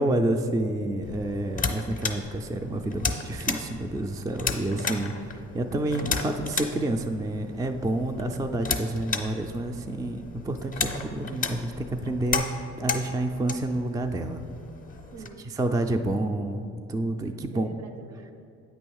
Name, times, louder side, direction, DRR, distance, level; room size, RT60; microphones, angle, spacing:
voice 1, 0.0-12.4 12.8-14.4 15.6-17.7, right 1 dB, 10° right, 5 dB, 0.3 m, -29 dB
sound 1, 1.0-15.3, left 4 dB, 25° left, 0.6 m, -34 dB
voice 2, 15.1-15.5 17.5-18.3, right 5 dB, 65° right, 8 dB, 0.7 m, -45 dB
8.4 x 3.1 x 6.3 m, 2.5 s
cardioid pair, 90°, 30 cm